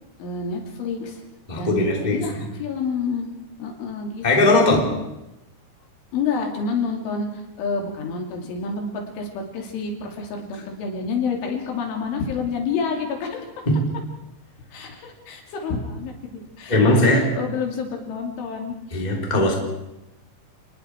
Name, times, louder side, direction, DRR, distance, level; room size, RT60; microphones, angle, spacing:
voice 1, 0.2-1.2 1.5-3.3 3.6-4.8 6.1-13.5 14.7-19.1 19.4-19.6, left 5 dB, 80° left, 2 dB, 5.5 m, -29 dB
voice 2, 1.5-2.5 4.2-4.9 13.7-13.9 16.7-17.4 18.9-19.5, left 1 dB, 10° left, 0 dB, 2.8 m, -19 dB
29.0 x 20.5 x 4.7 m, 0.93 s
omnidirectional pair, 5.4 m